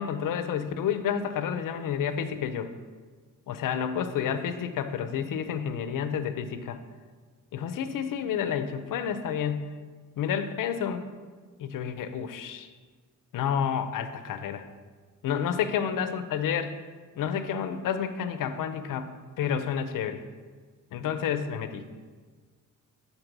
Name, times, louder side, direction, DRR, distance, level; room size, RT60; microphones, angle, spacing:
voice 1, 0.0-2.7 3.5-6.8 7.5-9.7 10.2-11.0 11.6-12.7 13.3-14.6 15.2-16.8 17.2-19.1 19.4-20.2 20.9-21.8, left 8 dB, 90° left, 10 dB, 0.6 m, -30 dB
6.6 x 4.2 x 5.9 m, 1.5 s
wide cardioid pair, 135°, 31 cm